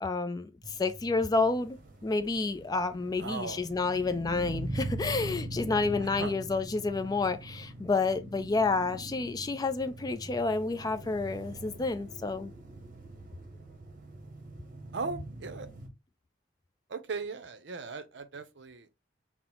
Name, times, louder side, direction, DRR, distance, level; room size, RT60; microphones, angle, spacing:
voice 1, 0.0-12.5, left 3 dB, 20° left, 0.3 m, -30 dB
sound 1, 0.6-15.9, right 1 dB, 45° right, 1.0 m, -42 dB
voice 2, 3.2-3.6 6.2-6.3 14.9-15.7 16.9-18.9, right 4 dB, 65° right, 0.6 m, -38 dB
5.4 x 2.0 x 2.9 m
head